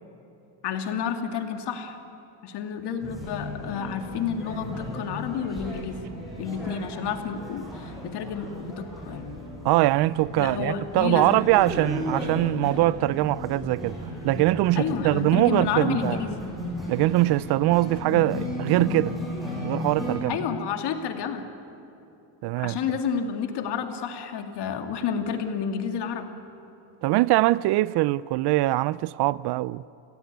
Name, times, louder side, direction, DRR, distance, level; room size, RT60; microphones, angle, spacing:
voice 1, 0.6-2.0 2.4-6.0 6.4-9.3 10.4-11.4 14.7-16.4 20.3-21.4 22.6-26.3, left 7 dB, 55° left, 2.4 m, -30 dB
sound 1, 3.0-20.2, left 1 dB, ahead, 7.5 m, -35 dB
voice 2, 9.6-14.0 14.2-16.2 16.9-19.2 19.6-20.4 22.4-22.8 27.0-29.8, right 17 dB, 55° right, 0.5 m, -22 dB
29.5 x 16.5 x 9.3 m
cardioid pair, 135°, 48 cm